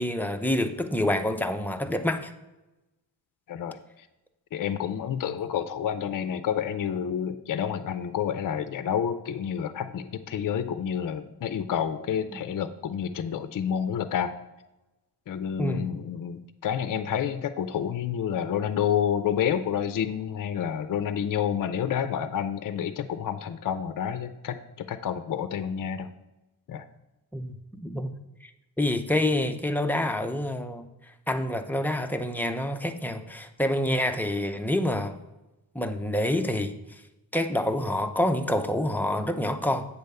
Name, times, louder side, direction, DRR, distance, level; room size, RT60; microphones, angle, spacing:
voice 1, 0.0-2.3 12.3-12.4 15.6-15.9 27.3-28.1 28.4-28.5 28.8-30.9 31.3-35.1 35.7-37.0 37.3-39.9, left 1 dB, 5° left, 6 dB, 0.5 m, -27 dB
voice 2, 3.5-3.8 4.5-14.3 15.3-24.6 24.9-26.1 26.7-26.8, left 8 dB, 55° left, 11 dB, 0.5 m, -29 dB
8.2 x 3.4 x 6.6 m, 0.99 s
wide cardioid pair, 125°, 38 cm